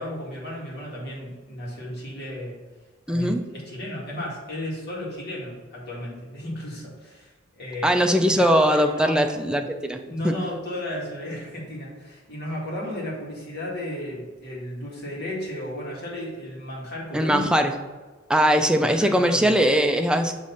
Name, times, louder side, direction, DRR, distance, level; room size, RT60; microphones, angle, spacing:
voice 1, 0.0-2.6 3.1-7.3 7.6-8.0 8.3-9.2 10.0-17.5 18.8-19.5, left 1 dB, 55° left, -4 dB, 2.0 m, -34 dB
voice 2, 3.1-3.4 7.8-10.3 17.1-17.7 18.3-20.3, equal, 5° right, 5 dB, 0.4 m, -20 dB
6.7 x 3.1 x 5.5 m, 1.3 s
head